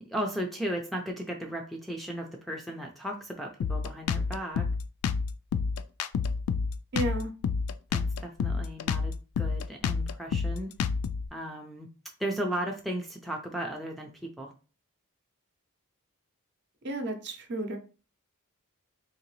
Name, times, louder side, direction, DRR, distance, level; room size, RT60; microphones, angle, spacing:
voice 1, 0.0-4.7 7.9-10.7 11.3-11.9 12.2-14.5, right 1 dB, ahead, 2 dB, 0.4 m, -35 dB
Drum kit, 3.6-11.3, left 5 dB, 75° left, 0.3 m, -29 dB
voice 2, 6.9-7.3 16.8-17.8, right 1 dB, 50° right, 5 dB, 0.7 m, -32 dB
3.7 x 2.9 x 3.1 m, 0.35 s
head